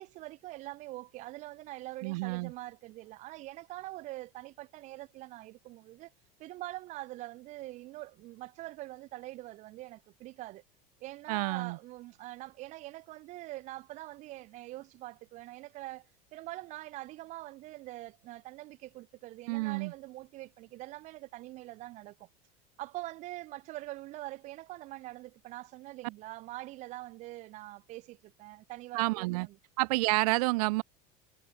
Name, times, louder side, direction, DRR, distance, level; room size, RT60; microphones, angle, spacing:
voice 1, 0.0-6.1 6.4-10.6 11.0-22.3 22.8-29.6, right 18 dB, 35° right, 1.2 m, -44 dB
voice 2, 2.0-2.5 11.3-11.8 19.5-19.9 28.9-29.5 29.8-30.8, right 24 dB, 65° right, 1.4 m, -29 dB
supercardioid pair, 170°, 21 cm